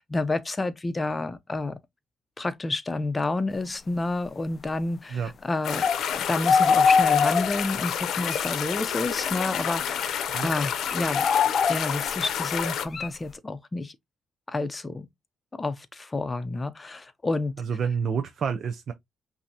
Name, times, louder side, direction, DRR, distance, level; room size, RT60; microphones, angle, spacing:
voice 1, 0.0-1.8 2.4-5.8 6.1-11.3 11.7-13.9 14.5-15.1 15.6-17.5, left 2 dB, 25° left, 0.7 m, -29 dB
sound 1, 5.6-12.9, left 8 dB, 75° left, 0.7 m, -29 dB
sound 2, 5.8-6.1 6.5-7.8 8.3-8.4 9.1-9.7 10.8-12.2 12.9-13.1, left 6 dB, 45° left, 0.3 m, -22 dB
voice 2, 17.6-18.9, right 6 dB, 55° right, 0.6 m, -28 dB
5.6 x 2.8 x 2.7 m
cardioid pair, 90°, 0 cm